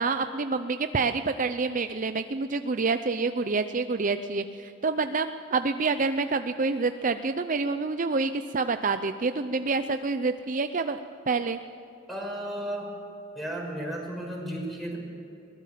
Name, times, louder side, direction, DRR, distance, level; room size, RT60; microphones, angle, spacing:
voice 1, 0.0-11.6, right 4 dB, 45° right, 9 dB, 0.6 m, -27 dB
voice 2, 12.1-12.9 13.3-15.0, right 1 dB, ahead, -1 dB, 5.7 m, -34 dB
22.5 x 19.5 x 7.4 m, 2.7 s
head